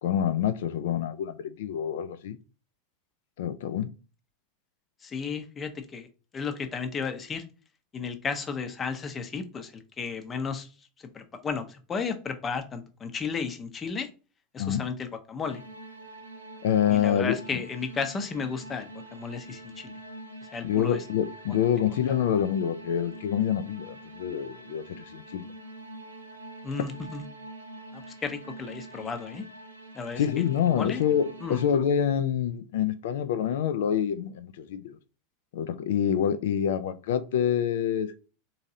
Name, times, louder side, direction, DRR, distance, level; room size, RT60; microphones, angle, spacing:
voice 1, 0.0-2.4 3.4-3.9 14.6-14.9 16.6-17.6 20.6-25.4 30.2-35.0 35.5-38.1, left 9 dB, 65° left, 0.3 m, -27 dB
voice 2, 5.0-6.1 6.3-7.4 7.9-10.7 11.1-14.1 14.5-15.6 16.9-20.0 20.4-21.0 26.6-27.2 27.9-29.5 29.9-30.4 30.8-31.0 31.4-31.6, left 5 dB, 25° left, 0.6 m, -34 dB
sound 1, 15.4-31.7, right 1 dB, 85° right, 0.5 m, -45 dB
3.8 x 2.7 x 2.6 m
figure-of-eight pair, 85°, 0 cm